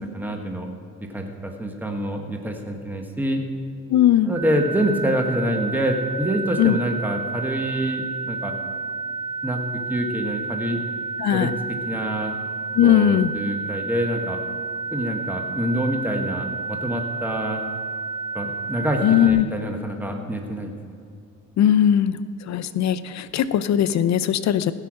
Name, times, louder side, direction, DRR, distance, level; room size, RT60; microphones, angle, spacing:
voice 1, 0.1-0.7 1.1-3.4 4.3-8.5 9.4-10.8 11.3-12.3 12.8-14.4 14.9-17.6 18.3-20.7, equal, 5° right, 3 dB, 1.4 m, -26 dB
voice 2, 3.9-4.3 6.6-6.7 11.2-11.5 12.7-13.3 19.0-19.5 21.6-22.2 22.5-24.7, left 10 dB, 65° left, 14 dB, 0.5 m, -19 dB
sound 1, 4.3-19.3, right 4 dB, 65° right, 1.8 m, -31 dB
16.5 x 5.8 x 6.3 m, 2.4 s
cardioid pair, 90°, 30 cm